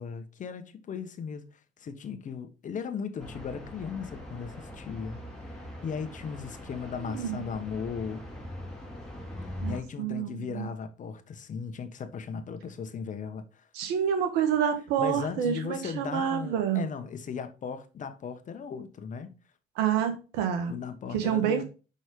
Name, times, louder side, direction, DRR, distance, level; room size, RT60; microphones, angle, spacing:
voice 1, 0.0-1.4 1.8-5.2 5.8-8.2 9.7-13.7 15.0-19.4 20.7-21.6, left 6 dB, 50° left, 1.4 m, -37 dB
sound 1, 3.2-9.8, left 1 dB, 5° left, 3.4 m, -41 dB
voice 2, 9.6-10.7 13.7-16.8 19.8-20.7 21.1-21.6, right 8 dB, 85° right, 1.6 m, -28 dB
6.3 x 5.4 x 5.3 m
supercardioid pair, 65°, 16 cm